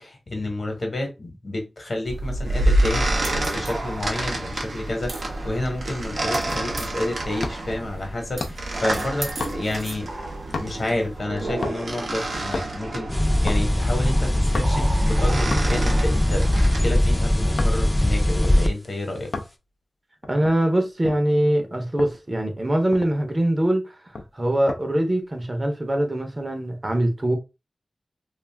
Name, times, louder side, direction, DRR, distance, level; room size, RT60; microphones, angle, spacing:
voice 1, 0.0-10.1 10.6-19.3, left 1 dB, 55° left, 1.0 m, -30 dB
sound 1, 2.0-16.9, right 1 dB, 85° right, 0.7 m, -28 dB
sound 2, 6.5-6.8 7.4-7.8 8.4-8.8 9.4-9.9 10.5-10.9 11.6-12.0 12.4-12.8 13.5-13.7 14.5-14.9 15.5-15.9 16.5-17.8 18.4-18.6 19.3-19.6 20.2-21.3 22.0-22.2 22.6-22.7 22.9-23.3 24.1-24.8 25.2-25.5, left 3 dB, 85° left, 0.4 m, -33 dB
sound 3, 13.1-18.7, left 1 dB, 15° left, 0.5 m, -20 dB
voice 2, 20.3-27.4, right 1 dB, 30° right, 0.7 m, -23 dB
2.4 x 2.4 x 3.2 m
wide cardioid pair, 85°, 0 cm